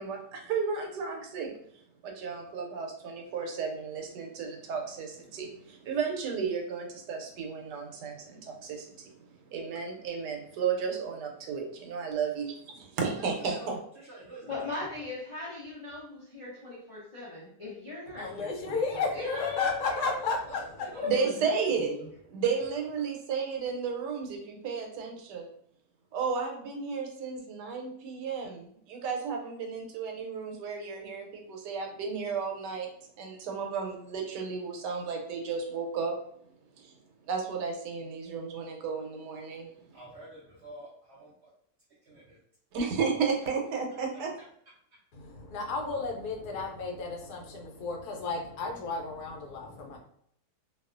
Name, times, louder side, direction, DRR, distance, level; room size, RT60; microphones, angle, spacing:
voice 1, 0.0-1.5 2.0-13.8 21.0-21.9 22.3-25.5 26.1-32.9 33.2-36.2 36.8-36.9 37.3-39.7 42.7-44.3, right 5 dB, 85° right, 2 dB, 1.2 m, -33 dB
voice 2, 13.1-13.7 13.9-14.9 20.0-20.1 20.5-21.5 21.8-22.1 39.9-41.5 42.0-42.4, right 2 dB, 65° right, -5 dB, 0.7 m, -48 dB
voice 3, 14.5-20.2 20.8-22.0, left 3 dB, 50° left, -8 dB, 0.3 m, -38 dB
voice 4, 18.1-20.6 45.1-50.0, left 4 dB, 75° left, 1 dB, 1.1 m, -33 dB
2.7 x 2.3 x 2.4 m, 0.68 s
omnidirectional pair, 1.8 m